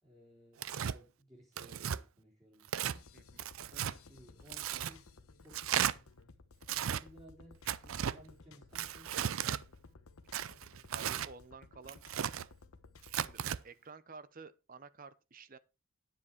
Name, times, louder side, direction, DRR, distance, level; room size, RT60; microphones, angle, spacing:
voice 1, 0.0-3.0 3.7-5.1 5.4-5.9 6.6-9.1, equal, 15° right, 3.4 m, -58 dB
Tearing, 0.6-1.0 1.6-2.0 2.6-3.0 3.4-3.9 4.5-4.9 5.5-5.9 6.6-7.0 7.7-8.2 8.7-9.6 10.3-11.3 11.9-12.5 13.0-13.6, right 9 dB, 70° right, 0.5 m, -35 dB
sound 1, 2.9-13.6, left 3 dB, 80° left, 1.0 m, -58 dB
voice 2, 10.9-12.0 13.1-15.6, right 4 dB, 40° right, 0.8 m, -52 dB
9.9 x 7.5 x 4.5 m
head